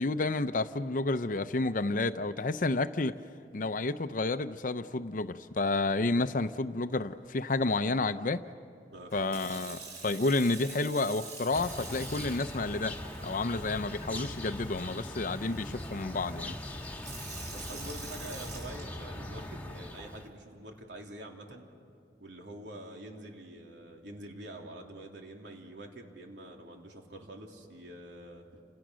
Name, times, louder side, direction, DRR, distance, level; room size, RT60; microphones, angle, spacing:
voice 1, 0.0-3.2 3.5-8.4 9.1-16.5, left 3 dB, 50° left, 11 dB, 0.6 m, -30 dB
Sink (filling or washing) / Fill (with liquid), 9.1-19.3 20.0-20.3, right 4 dB, 40° right, 7.3 m, -47 dB
sound 1, 11.5-20.3, left 1 dB, 10° left, 1.6 m, -41 dB
voice 2, 17.5-21.7 22.2-28.4, right 1 dB, 85° right, 1 dB, 3.1 m, -46 dB
29.5 x 27.5 x 6.3 m, 2.4 s
head